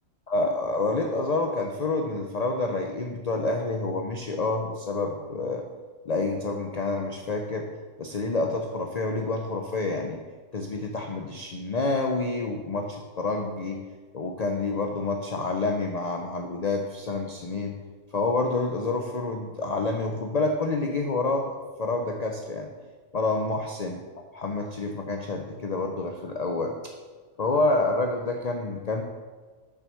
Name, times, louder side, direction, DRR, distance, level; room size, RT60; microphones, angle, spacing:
voice 1, 0.3-5.6 6.1-7.7 8.0-10.2 10.5-13.8 14.1-17.8 18.1-21.5 21.8-22.7 23.1-24.0 24.3-26.8 27.4-29.0, left 3 dB, 40° left, 3 dB, 0.6 m, -28 dB
6.2 x 6.2 x 6.7 m, 1.4 s
omnidirectional pair, 1.3 m